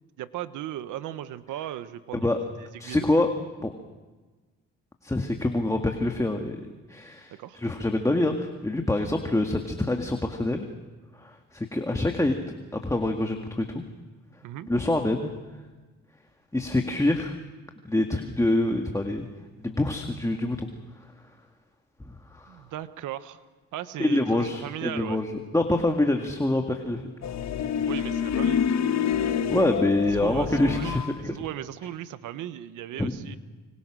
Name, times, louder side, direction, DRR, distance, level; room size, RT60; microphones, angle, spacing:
voice 1, 0.2-2.3 2.8-3.2 7.3-7.6 14.4-14.7 22.5-23.4 23.7-25.2 27.9-28.7 30.1-33.4, right 12 dB, 85° right, 13 dB, 1.2 m, -37 dB
voice 2, 2.8-3.3 3.6-3.7 5.0-6.6 6.9-10.7 11.1-12.4 12.7-13.8 14.7-15.3 16.5-17.3 17.8-19.3 19.6-20.7 22.3-22.6 24.0-27.0 29.5-31.3 33.0-33.1, left 2 dB, 10° left, 3 dB, 2.0 m, -26 dB
sound 1, 27.2-31.2, left 8 dB, 65° left, 1.4 m, -27 dB
26.5 x 25.0 x 6.3 m, 1.3 s
cardioid pair, 90°, 30 cm